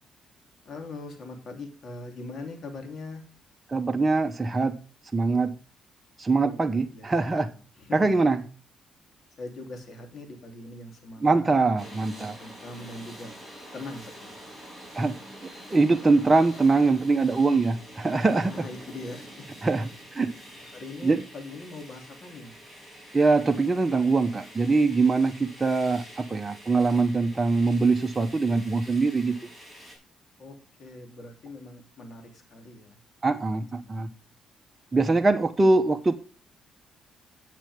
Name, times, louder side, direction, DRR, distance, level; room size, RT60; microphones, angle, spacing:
voice 1, 0.6-3.2 6.4-8.2 9.4-13.3 13.7-14.5 14.9-15.0 18.5-19.5 20.6-22.5 30.4-33.0 33.8-34.1 35.0-35.3, left 2 dB, 55° left, 3 dB, 3.4 m, -42 dB
voice 2, 3.7-4.8 5.1-5.5 6.2-7.5 7.9-8.4 11.2-12.3 14.9-15.1 15.4-18.6 19.6-20.3 21.0-21.2 23.1-29.4 33.2-34.1 34.9-36.2, right 3 dB, 20° right, 5 dB, 1.0 m, -23 dB
sound 1, 11.8-30.0, equal, 10° left, 6.6 m, -46 dB
11.0 x 8.6 x 3.6 m, 0.36 s
cardioid pair, 90°, 0 cm